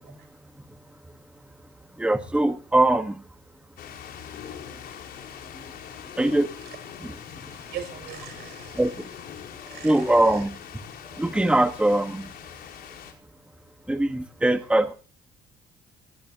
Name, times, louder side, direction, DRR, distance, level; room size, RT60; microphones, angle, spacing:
voice 1, 2.0-3.2 6.2-6.5 7.0-7.1 8.7-8.9 9.8-10.5 11.2-12.3 13.9-14.9, right 1 dB, 5° right, 7 dB, 1.4 m, -21 dB
sound 1, 3.8-13.1, left 8 dB, 65° left, 4.9 m, -42 dB
voice 2, 7.3-8.8 9.7-10.4, right 9 dB, 75° right, 10 dB, 6.1 m, -40 dB
20.5 x 18.5 x 2.9 m, 0.36 s
cardioid pair, 110°, 17 cm